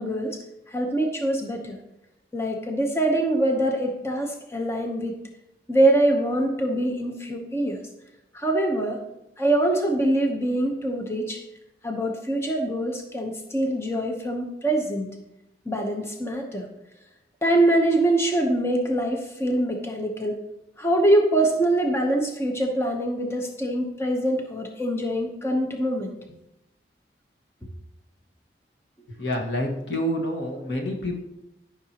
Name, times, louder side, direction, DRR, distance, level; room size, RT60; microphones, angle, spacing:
voice 1, 0.0-1.8 2.3-5.2 5.7-7.8 8.3-9.0 9.4-11.4 11.8-15.1 15.6-16.7 17.4-20.4 20.8-26.2, right 1 dB, 15° left, 2 dB, 0.9 m, -24 dB
voice 2, 29.1-31.2, equal, 85° left, 2 dB, 1.6 m, -28 dB
13.5 x 6.1 x 2.9 m, 0.90 s
head